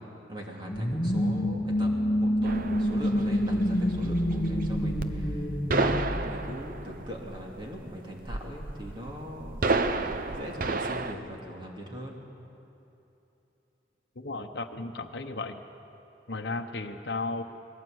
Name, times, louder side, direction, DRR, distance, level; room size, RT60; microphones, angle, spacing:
voice 1, 0.3-1.9 2.2-5.5 5.7-12.2, equal, 25° right, -1 dB, 2.7 m, -41 dB
sound 1, 0.7-7.1, equal, 30° left, 1.2 m, -28 dB
sound 2, 2.4-11.1, right 3 dB, 50° right, 0.7 m, -32 dB
voice 2, 14.2-15.6 16.3-17.4, left 3 dB, 65° left, 4 dB, 1.0 m, -34 dB
21.0 x 17.0 x 8.0 m, 3.0 s
head